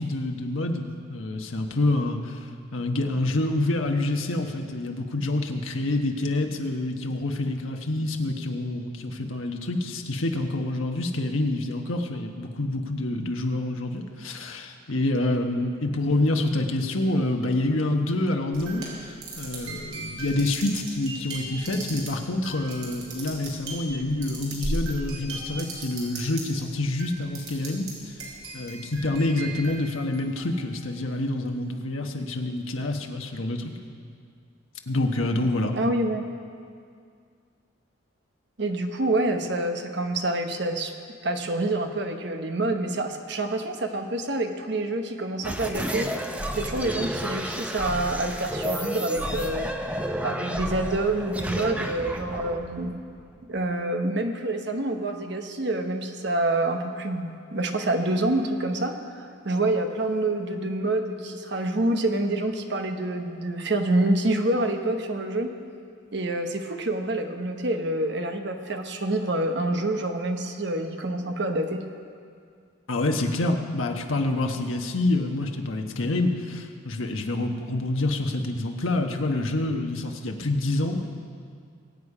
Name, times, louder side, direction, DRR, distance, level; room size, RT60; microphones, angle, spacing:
voice 1, 0.0-2.4 2.7-28.2 28.5-33.7 34.9-35.7 72.9-81.1, left 2 dB, 80° left, 3 dB, 1.2 m, -27 dB
sound 1, 18.5-26.6 27.0-27.9 28.2-30.6, right 2 dB, 90° right, 3.8 m, -36 dB
voice 2, 35.7-36.2 38.6-40.9 41.2-49.7 50.2-52.9 53.5-65.5 66.1-71.8, right 2 dB, 55° right, 5 dB, 1.0 m, -27 dB
sound 2, 45.4-53.6, equal, 5° right, 0.6 m, -31 dB
22.5 x 8.4 x 4.9 m, 2.2 s
head